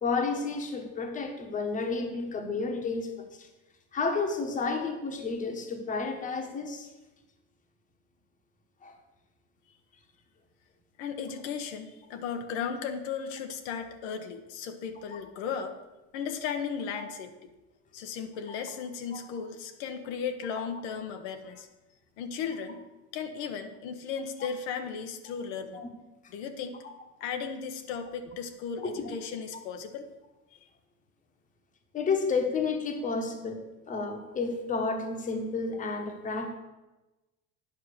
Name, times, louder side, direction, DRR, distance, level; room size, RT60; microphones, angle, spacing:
voice 1, 0.0-3.5 3.9-6.9 8.8-9.0 17.0-17.1 18.5-18.6 25.7-25.9 28.8-29.1 31.9-36.5, left 4 dB, 25° left, 4 dB, 1.2 m, -31 dB
voice 2, 11.0-15.7 16.1-17.3 17.9-21.7 22.2-22.8 23.1-25.8 26.3-26.8 27.2-30.1, left 6 dB, 80° left, 6 dB, 1.1 m, -36 dB
9.5 x 5.8 x 6.7 m, 1.1 s
cardioid pair, 145°, 32 cm